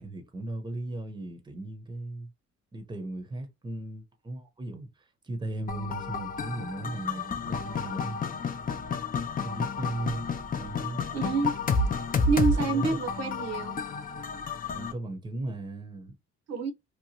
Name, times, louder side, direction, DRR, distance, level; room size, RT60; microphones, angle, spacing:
voice 1, 0.0-2.3 2.7-8.2 9.4-10.3 10.5-11.1 12.1-12.9 14.7-16.1, right 2 dB, 15° right, 0.8 m, -37 dB
sound 1, 5.7-14.9, left 4 dB, 30° left, 0.5 m, -31 dB
voice 2, 11.1-11.5 12.3-13.8 16.5-16.7, right 4 dB, 60° right, 0.8 m, -28 dB
2.9 x 2.2 x 2.8 m
cardioid pair, 90°, 30 cm